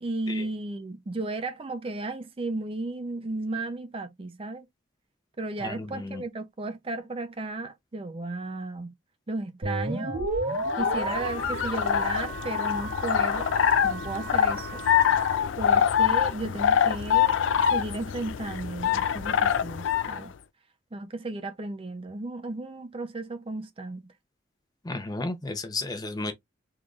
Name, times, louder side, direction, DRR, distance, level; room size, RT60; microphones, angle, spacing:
voice 1, 0.0-4.7 5.4-8.9 9.3-10.3 10.8-13.5 13.8-14.8 15.6-17.4 17.7-20.3 20.9-24.1, right 2 dB, 30° right, 0.5 m, -34 dB
voice 2, 5.6-6.2 24.8-26.3, left 2 dB, 20° left, 0.6 m, -33 dB
sound 1, 9.6-15.3, right 2 dB, 80° right, 2.0 m, -33 dB
sound 2, 10.5-20.2, left 8 dB, 70° left, 0.4 m, -25 dB
3.7 x 3.3 x 2.4 m
head